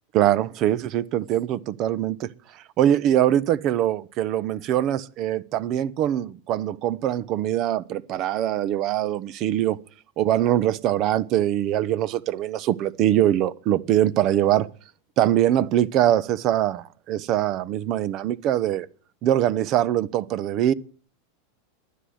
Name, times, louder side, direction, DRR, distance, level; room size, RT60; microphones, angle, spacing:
voice 1, 0.1-2.3 2.8-9.8 10.2-14.7 15.2-18.9 19.2-20.7, right 12 dB, 45° right, 1.1 m, -23 dB
12.5 x 10.5 x 9.5 m
hypercardioid pair, 105°, 0 cm